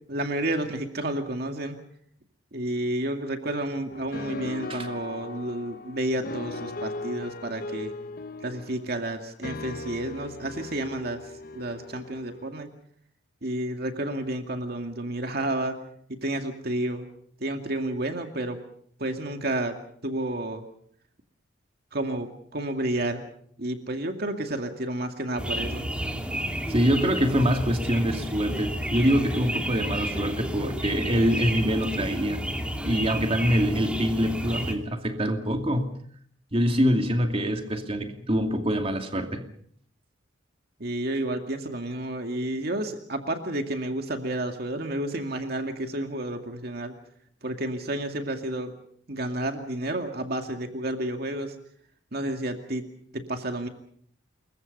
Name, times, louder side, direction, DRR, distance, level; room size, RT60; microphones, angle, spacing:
voice 1, 0.1-1.8 2.5-7.9 8.4-12.7 13.4-15.7 16.2-17.0 17.4-18.6 19.0-19.8 20.0-20.6 21.9-23.2 23.6-25.9 40.8-46.9 47.4-48.7 49.1-51.6 52.1-52.8 53.1-53.7, right 1 dB, 55° right, 5 dB, 2.3 m, -30 dB
sound 1, 3.9-12.5, left 2 dB, 50° left, 1.1 m, -39 dB
sound 2, 25.4-34.7, equal, 5° right, 2.9 m, -31 dB
voice 2, 26.7-32.4 32.8-36.0 36.5-39.4, equal, 30° right, 4 dB, 2.6 m, -25 dB
28.5 x 23.0 x 5.5 m, 0.62 s
head